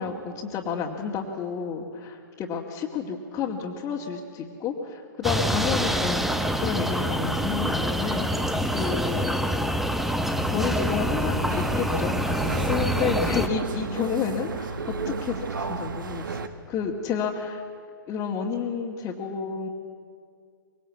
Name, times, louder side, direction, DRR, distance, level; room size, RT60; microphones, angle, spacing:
voice 1, 0.0-9.4 10.5-14.8 15.0-16.4 16.7-17.6 18.1-19.7, left 6 dB, 25° left, -4 dB, 2.3 m, -30 dB
sound 1, 5.2-13.5, equal, ahead, 1.2 m, -26 dB
sound 2, 11.5-16.5, right 4 dB, 70° right, 1.7 m, -33 dB
24.5 x 22.5 x 8.4 m, 2.1 s
figure-of-eight pair, 115°, 11 cm